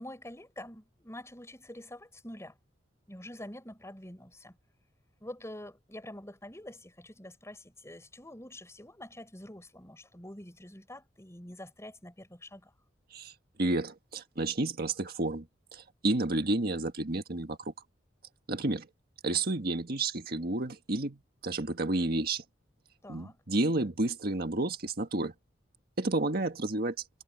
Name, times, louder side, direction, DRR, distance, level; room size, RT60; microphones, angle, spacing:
voice 1, 0.0-2.6 3.1-4.6 5.2-12.7 23.0-23.4, left 1 dB, 15° left, 6.1 m, -46 dB
voice 2, 13.6-15.5 15.7-17.7 18.5-18.9 19.2-22.4 23.1-25.3 26.0-26.9, right 2 dB, 55° right, 1.7 m, -31 dB
head